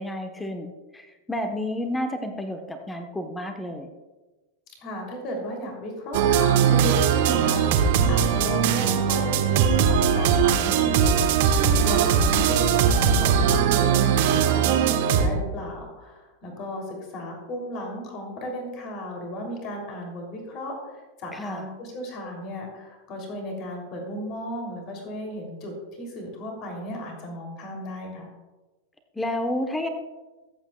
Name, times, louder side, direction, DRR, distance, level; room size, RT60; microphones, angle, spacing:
voice 1, 0.0-3.9 11.8-12.1 21.3-21.7 29.2-29.9, left 1 dB, 10° left, 7 dB, 1.1 m, -31 dB
voice 2, 4.8-28.3, left 1 dB, 35° left, 2 dB, 3.0 m, -35 dB
sound 1, 6.1-15.3, right 7 dB, 50° right, 1.2 m, -20 dB
23.5 x 8.2 x 2.3 m, 1.2 s
figure-of-eight pair, 90°, 0 cm